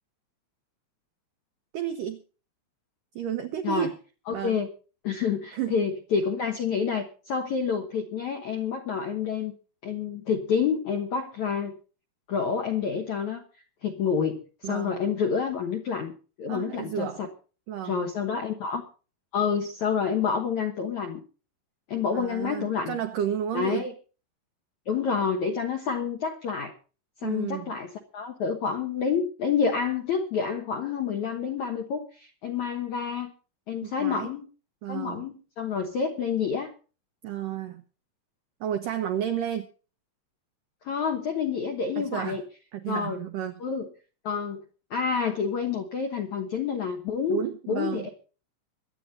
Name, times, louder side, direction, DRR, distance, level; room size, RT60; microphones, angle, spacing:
voice 1, 1.7-2.2 3.2-3.9 4.3-4.6 5.5-5.8 14.6-15.0 16.5-17.3 17.7-18.1 22.1-23.8 27.2-27.7 33.8-34.3 34.8-35.2 37.2-37.8 38.6-39.7 42.0-42.4 42.7-43.5 47.3-48.1, right 10 dB, 85° right, 7 dB, 1.9 m, -31 dB
voice 2, 4.3-4.7 5.0-9.5 9.8-11.7 12.3-13.4 13.8-16.1 16.4-17.3 17.8-18.8 19.3-21.2 21.9-23.0 23.5-23.9 24.9-26.7 27.2-33.3 33.7-34.5 34.9-36.7 40.8-42.4 42.9-43.2 43.6-43.9 44.2-44.6 44.9-47.4 47.7-48.1, left 6 dB, 85° left, 4 dB, 1.6 m, -28 dB
24.0 x 9.2 x 4.1 m, 0.37 s
omnidirectional pair, 5.4 m